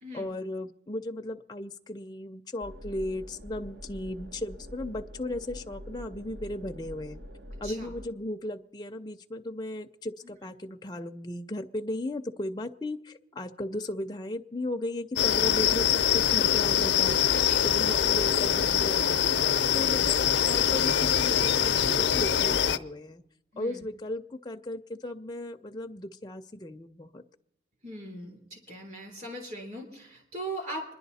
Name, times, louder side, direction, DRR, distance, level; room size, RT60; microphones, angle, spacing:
voice 1, 0.1-7.2 7.6-17.2 17.6-19.3 19.7-23.2 23.6-27.2, left 1 dB, 25° left, 5 dB, 0.5 m, -36 dB
sound 1, 2.6-8.1, equal, 65° right, 1.0 m, -45 dB
sound 2, 15.2-22.8, left 9 dB, 80° left, 0.6 m, -24 dB
voice 2, 17.5-17.9 19.7-20.0 23.5-23.8 27.8-30.8, right 1 dB, 45° right, 2 dB, 3.6 m, -40 dB
26.5 x 11.0 x 4.1 m, 0.88 s
head